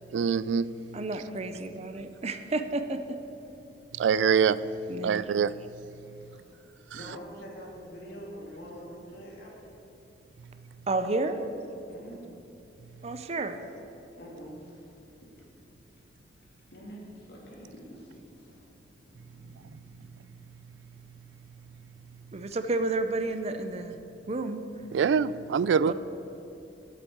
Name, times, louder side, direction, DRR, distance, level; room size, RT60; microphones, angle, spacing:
voice 1, 0.1-0.7 3.9-4.6 5.0-5.5 24.9-25.9, right 6 dB, 90° right, 18 dB, 0.3 m, -24 dB
voice 2, 0.9-3.2 4.9-5.3 10.9-11.4 13.0-13.6 22.3-24.0 24.3-24.6 25.8-25.9, right 2 dB, 35° right, 9 dB, 0.6 m, -31 dB
voice 3, 6.2-6.5 6.9-9.7 11.8-12.2 13.2-13.3 14.2-15.3 16.7-18.7 19.0-20.1, equal, 65° left, -4 dB, 3.1 m, -46 dB
8.1 x 7.6 x 8.8 m, 2.8 s
head